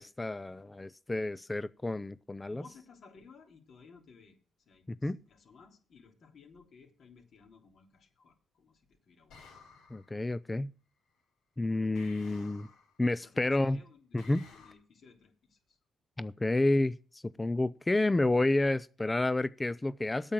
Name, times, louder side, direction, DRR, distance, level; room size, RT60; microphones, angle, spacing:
voice 1, 0.0-2.6 5.0-5.2 9.9-10.7 11.6-12.7 13.0-13.8 14.1-14.4 16.2-20.3, left 2 dB, 15° left, 0.5 m, -30 dB
voice 2, 2.5-4.4 4.6-9.5 13.2-15.8, left 5 dB, 60° left, 3.3 m, -58 dB
sound 1, 9.3-10.2 11.9-13.0 14.2-14.7, left 4 dB, 90° left, 4.7 m, -55 dB
8.7 x 7.2 x 7.7 m
cardioid pair, 90°, 0 cm